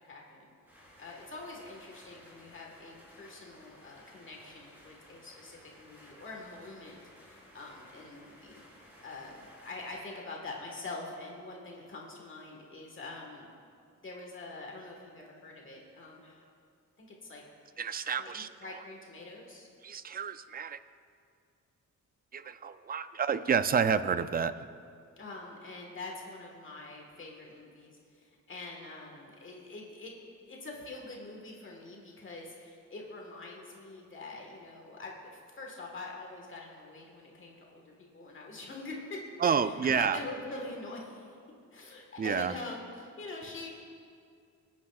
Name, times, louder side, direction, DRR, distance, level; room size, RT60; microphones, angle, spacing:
voice 1, 0.0-0.5 1.0-8.6 9.0-13.5 14.0-16.4 17.0-17.4 18.2-19.7 25.2-30.1 30.5-39.2 39.8-41.3 41.7-43.7, left 3 dB, 40° left, 0 dB, 1.5 m, -45 dB
sound 1, 0.7-10.0, equal, 5° right, 3.4 m, -57 dB
voice 2, 17.8-18.8 19.8-20.8 22.3-24.5 39.4-40.2 42.2-42.6, right 6 dB, 30° right, 12 dB, 0.4 m, -29 dB
25.0 x 9.6 x 2.4 m, 2.3 s
wide cardioid pair, 155°, 30 cm